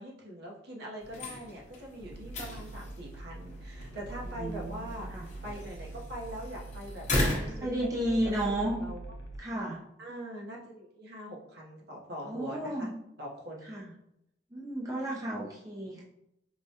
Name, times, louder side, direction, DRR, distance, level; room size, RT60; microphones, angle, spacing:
voice 1, 0.0-9.0 10.0-12.9 13.2-13.8, equal, 60° right, -2 dB, 0.8 m, -43 dB
sound 1, 1.0-8.5, left 1 dB, 40° left, 0.8 m, -37 dB
sound 2, 2.0-9.4, right 2 dB, 65° left, 0.4 m, -44 dB
voice 2, 4.3-5.3 7.6-8.8 9.4-9.8 12.3-12.9 13.6-13.9 14.5-16.0, right 1 dB, 20° right, -5 dB, 0.5 m, -33 dB
4.7 x 2.2 x 2.7 m, 0.82 s
head